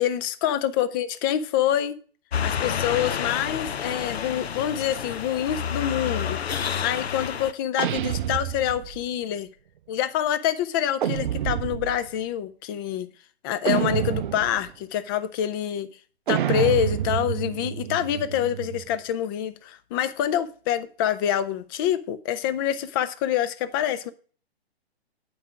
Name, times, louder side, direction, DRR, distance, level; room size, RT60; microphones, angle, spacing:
voice 1, 0.0-1.9 2.4-6.4 6.8-9.5 9.9-13.1 13.4-15.9 16.3-24.1, left 10 dB, 20° left, 0.5 m, -26 dB
sound 1, 2.3-7.5, left 7 dB, 75° left, 0.6 m, -29 dB
sound 2, 7.8-9.1 11.0-12.1 13.7-14.7 16.3-19.0, right 10 dB, 50° right, 0.5 m, -28 dB
9.3 x 4.7 x 4.9 m
figure-of-eight pair, 125°, 32 cm